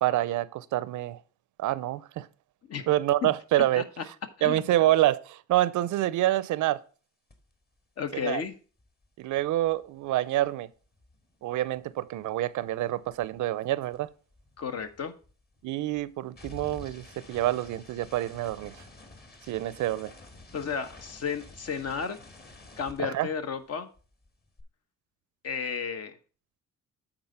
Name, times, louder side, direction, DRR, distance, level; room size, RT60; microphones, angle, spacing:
voice 1, 0.0-1.2 1.6-2.3 2.9-3.8 4.4-6.8 8.2-8.4 9.2-10.7 11.4-14.1 15.6-18.7 19.5-20.1 23.0-23.3, right 14 dB, 75° right, 0.6 m, -27 dB
voice 2, 4.4-4.7 8.0-8.5 14.6-15.1 20.5-22.2 22.8-23.9 25.4-26.2, left 6 dB, 55° left, 1.1 m, -33 dB
sound 1, 7.3-7.5 7.8-12.2 12.4-23.7 24.0-24.6, left 2 dB, 30° left, 1.8 m, -51 dB
8.8 x 4.1 x 5.5 m
cardioid pair, 90°, 30 cm